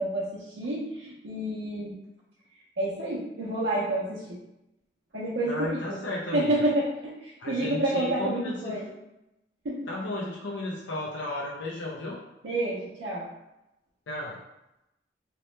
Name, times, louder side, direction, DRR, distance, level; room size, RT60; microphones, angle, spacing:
voice 1, 0.0-2.0 2.8-4.4 5.1-6.0 6.3-8.9 9.6-9.8 12.4-13.3, right 1 dB, 90° right, -6 dB, 0.5 m, -29 dB
voice 2, 5.5-6.5 7.4-8.7 9.9-12.2 14.1-14.4, left 2 dB, 90° left, -4 dB, 0.5 m, -34 dB
2.9 x 2.0 x 3.1 m, 0.92 s
head